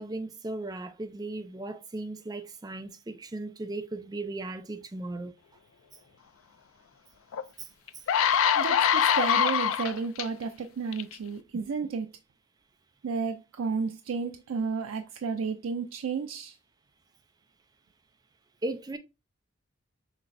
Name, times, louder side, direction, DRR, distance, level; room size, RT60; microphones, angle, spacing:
voice 1, 0.0-5.3 7.6-8.0 11.5-11.6 18.6-19.0, right 2 dB, 20° right, 0.4 m, -37 dB
sound 1, 7.3-7.4 7.9-10.2 10.9-11.1, left 8 dB, 80° left, 0.4 m, -24 dB
voice 2, 8.5-12.1 13.0-16.6, right 5 dB, 85° right, 0.4 m, -32 dB
5.9 x 3.2 x 2.6 m
head